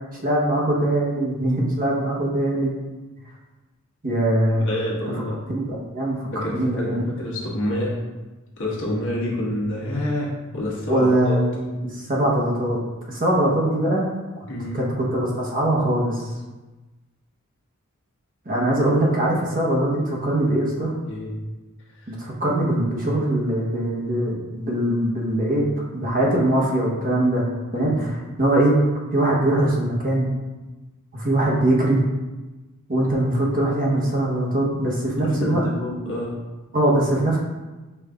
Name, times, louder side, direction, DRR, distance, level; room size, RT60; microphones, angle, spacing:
voice 1, 0.2-2.7 4.0-4.7 5.5-7.0 10.9-12.8 13.1-14.1 14.7-16.3 18.4-20.9 22.1-25.7 25.9-27.4 27.7-28.1 28.4-28.8 29.1-30.3 31.1-32.0 32.9-35.6 36.7-37.4, right 1 dB, 40° right, -3 dB, 1.0 m, -22 dB
voice 2, 4.6-5.4 6.3-8.0 8.6-11.4 14.5-14.8 21.0-21.3 27.7-27.9 35.2-36.4, left 1 dB, 60° left, -4 dB, 1.2 m, -28 dB
5.6 x 2.6 x 3.4 m, 1.2 s
head